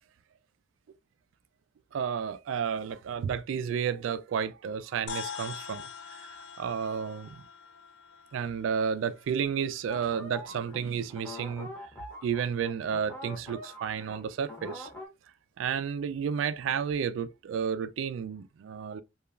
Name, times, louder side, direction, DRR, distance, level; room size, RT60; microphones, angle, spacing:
voice 1, 1.9-6.3 6.6-7.4 8.3-11.7 12.2-14.9 15.6-19.0, right 7 dB, 75° right, 0.3 m, -32 dB
sound 1, 5.1-9.7, left 6 dB, 65° left, 0.4 m, -43 dB
sound 2, 9.9-15.1, left 1 dB, 10° left, 0.7 m, -44 dB
3.0 x 2.3 x 2.3 m
head